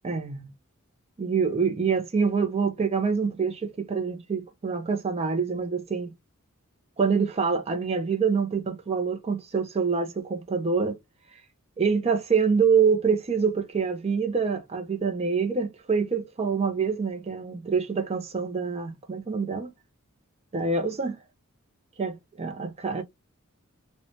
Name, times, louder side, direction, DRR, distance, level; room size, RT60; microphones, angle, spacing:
voice 1, 0.0-0.5 1.2-6.1 7.0-11.0 11.8-19.7 20.5-21.2 22.0-23.0, right 5 dB, 30° right, 0.4 m, -26 dB
3.1 x 2.1 x 2.6 m
head